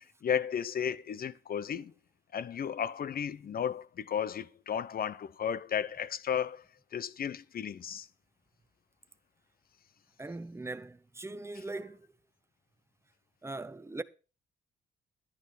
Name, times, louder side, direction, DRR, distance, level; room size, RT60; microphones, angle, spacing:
voice 1, 0.2-1.9 2.3-6.6 6.9-8.1, left 8 dB, 50° left, 0.8 m, -34 dB
voice 2, 10.2-12.1 13.4-14.0, right 2 dB, 15° right, 0.9 m, -40 dB
11.5 x 10.5 x 4.3 m
cardioid pair, 90°, 20 cm